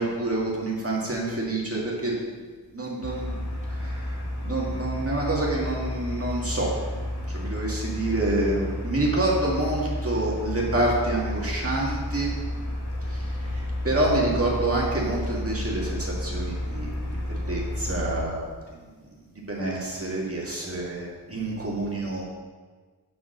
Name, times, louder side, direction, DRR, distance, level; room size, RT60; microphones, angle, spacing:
voice 1, 0.0-2.1 2.7-6.7 7.3-12.3 13.1-18.8 19.5-22.2, right 2 dB, 35° right, -4 dB, 2.0 m, -28 dB
sound 1, 3.0-18.2, left 1 dB, 90° left, 1.4 m, -31 dB
5.8 x 5.2 x 6.3 m, 1.4 s
wide cardioid pair, 55°, 39 cm